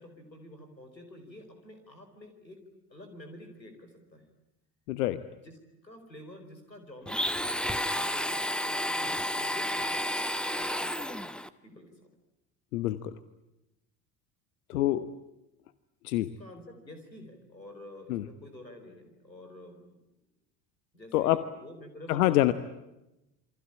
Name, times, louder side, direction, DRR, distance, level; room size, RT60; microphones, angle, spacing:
voice 1, 0.0-2.6 2.9-4.2 5.4-5.5 5.8-11.2 11.6-12.1 14.7-15.0 16.4-20.0 20.9-22.5, left 1 dB, 90° left, 6 dB, 4.5 m, -49 dB
voice 2, 4.9-5.2 12.7-13.2 14.7-15.0 16.0-16.3 18.1-18.3 21.1-21.5 22.1-22.5, left 15 dB, 60° left, 14 dB, 1.2 m, -26 dB
Domestic sounds home sounds, 7.1-11.5, equal, ahead, 1.1 m, -31 dB
28.5 x 24.5 x 8.7 m, 0.93 s
figure-of-eight pair, 65°, 50 cm